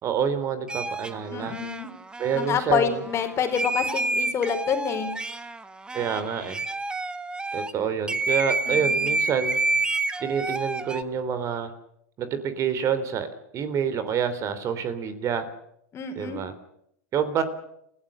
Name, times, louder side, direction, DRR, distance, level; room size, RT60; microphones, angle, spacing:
voice 1, 0.0-1.5 2.2-3.0 5.9-6.6 7.5-9.6 10.2-11.7 12.2-13.3 13.5-15.5 16.1-16.5 17.1-17.4, right 7 dB, 35° right, 12 dB, 3.4 m, -27 dB
sound 1, 0.7-7.7 8.1-11.0, right 3 dB, 10° right, 1.5 m, -29 dB
voice 2, 1.3-1.9 2.3-5.1 8.7-9.1 15.9-16.4, left 7 dB, 30° left, 6 dB, 4.5 m, -27 dB
30.0 x 16.5 x 6.7 m, 0.72 s
hypercardioid pair, 100°, 9 cm